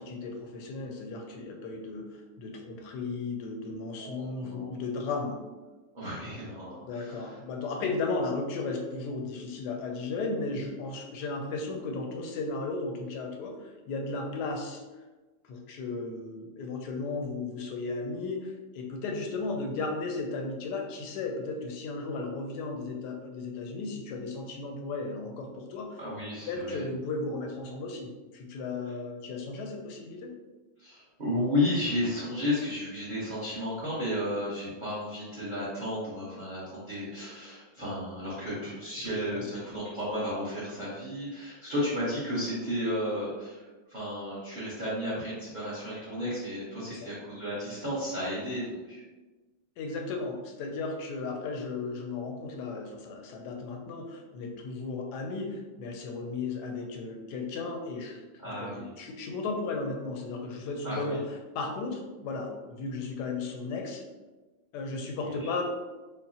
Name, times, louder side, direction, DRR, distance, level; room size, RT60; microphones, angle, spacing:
voice 1, 0.0-5.4 6.8-14.8 15.4-26.0 26.5-30.3 39.3-39.4 46.9-47.1 49.8-61.2 61.5-64.0 64.7-65.6, left 3 dB, 75° left, 3 dB, 1.1 m, -35 dB
voice 2, 4.0-4.7 5.9-7.4 26.0-26.8 28.8-28.9 30.8-49.0 58.4-58.9 60.8-61.2 65.2-65.6, left 1 dB, 35° right, -8 dB, 0.8 m, -33 dB
5.4 x 2.1 x 2.7 m, 1.2 s
omnidirectional pair, 2.0 m